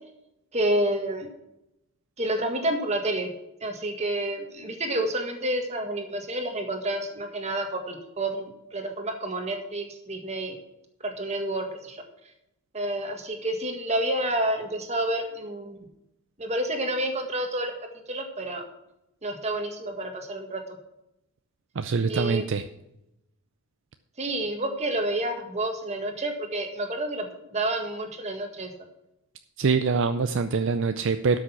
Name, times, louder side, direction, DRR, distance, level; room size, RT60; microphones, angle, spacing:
voice 1, 0.5-1.3 2.2-3.3 3.6-10.5 11.0-12.0 12.7-15.8 16.4-17.7 18.1-18.6 19.2-20.6 22.1-22.5 24.2-28.7, right 1 dB, 30° right, 4 dB, 1.8 m, -29 dB
voice 2, 21.8-22.6 29.6-31.4, right 5 dB, 60° right, 9 dB, 0.5 m, -24 dB
12.5 x 6.5 x 5.9 m, 0.88 s
head